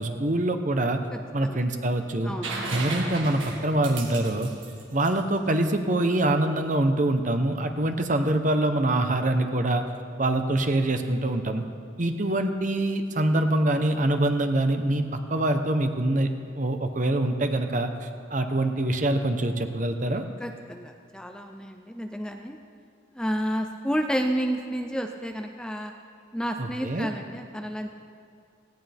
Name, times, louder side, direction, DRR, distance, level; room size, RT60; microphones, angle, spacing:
voice 1, 0.0-1.0 1.3-2.3 2.7-4.5 4.9-9.8 10.2-11.6 12.0-20.2 26.6-27.1, right 1 dB, 40° right, 6 dB, 1.0 m, -25 dB
voice 2, 1.1-1.6 2.2-2.5 20.4-22.6 23.1-25.9 26.3-27.9, equal, 5° left, 4 dB, 0.6 m, -31 dB
sound 1, 2.4-6.1 8.0-8.1, right 3 dB, 90° right, 2.0 m, -35 dB
18.5 x 17.0 x 3.6 m, 2.3 s
head